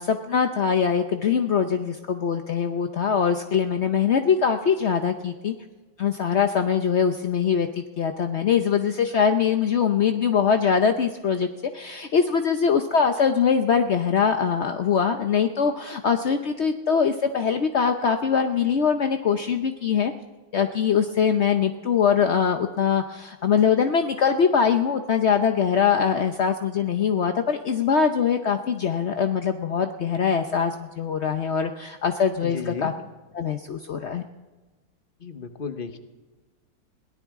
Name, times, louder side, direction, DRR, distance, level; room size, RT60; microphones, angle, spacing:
voice 1, 0.0-5.5 6.0-11.5 11.7-20.1 20.5-32.9 33.3-34.2, left 7 dB, 70° left, 6 dB, 0.6 m, -22 dB
voice 2, 32.4-32.9 35.2-36.0, left 5 dB, 35° left, 8 dB, 0.9 m, -33 dB
22.0 x 17.5 x 3.6 m, 1.2 s
omnidirectional pair, 2.2 m